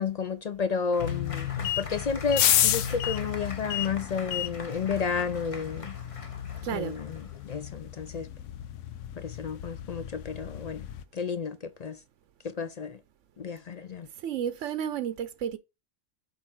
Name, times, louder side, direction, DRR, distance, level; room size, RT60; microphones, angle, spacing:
voice 1, 0.0-6.0 6.7-8.3 9.2-10.9 11.1-12.0 12.4-13.0 13.4-14.1, left 5 dB, 55° left, 0.4 m, -32 dB
Applause / Crowd, 0.9-7.7, left 3 dB, 30° left, 0.9 m, -44 dB
sound 1, 1.0-11.0, left 11 dB, 80° left, 1.0 m, -32 dB
voice 2, 6.6-7.0 14.2-15.6, right 9 dB, 80° right, 1.0 m, -32 dB
8.0 x 2.9 x 5.8 m
omnidirectional pair, 1.3 m